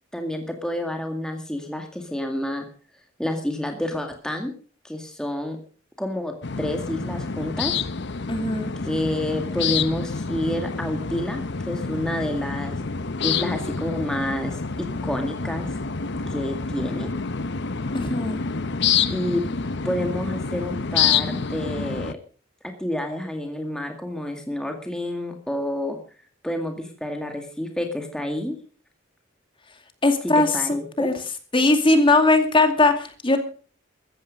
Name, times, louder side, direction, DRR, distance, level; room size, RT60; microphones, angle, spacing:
voice 1, 0.1-2.6 3.2-4.5 4.8-5.6 6.0-6.3 6.6-7.7 8.8-11.4 11.7-12.8 13.2-15.8 16.3-17.1 19.1-19.4 19.8-22.1 22.8-26.0 26.4-28.6 30.2-31.1, left 1 dB, 5° left, 3 dB, 2.1 m, -29 dB
sound 1, 6.4-22.1, left 5 dB, 60° left, 0.9 m, -27 dB
voice 2, 8.3-8.7 17.9-18.4 30.0-31.1 31.5-33.4, left 2 dB, 25° left, 6 dB, 2.4 m, -19 dB
15.0 x 15.0 x 5.2 m, 0.41 s
head